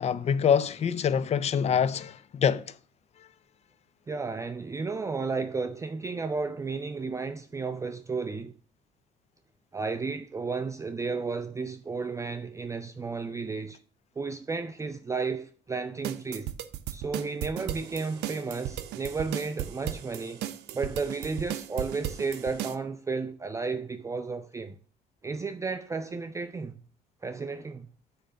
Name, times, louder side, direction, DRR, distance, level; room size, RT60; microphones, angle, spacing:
voice 1, 0.0-2.6, left 7 dB, 40° left, 0.5 m, -25 dB
voice 2, 4.1-8.5 9.7-13.8 14.2-16.5 16.9-20.5 20.7-24.8 25.2-26.8 27.2-27.9, right 4 dB, 20° right, 0.4 m, -33 dB
sound 1, 16.0-22.8, right 12 dB, 80° right, 0.6 m, -36 dB
8.9 x 3.4 x 6.4 m
cardioid pair, 110°, 17 cm